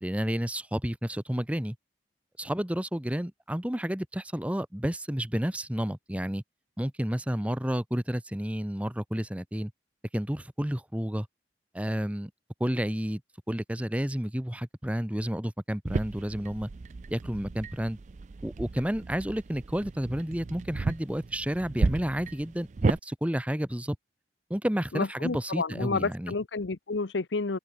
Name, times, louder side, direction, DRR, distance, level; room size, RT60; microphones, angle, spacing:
voice 1, 0.0-1.8 2.4-6.4 6.8-9.7 10.1-11.3 11.7-12.3 12.6-13.2 13.5-16.7 17.1-18.0 18.4-24.0 24.5-26.3, equal, 5° right, 0.9 m, -31 dB
sound 1, 15.9-23.0, right 3 dB, 40° right, 0.4 m, -33 dB
voice 2, 24.9-27.6, left 3 dB, 90° left, 0.8 m, -30 dB
head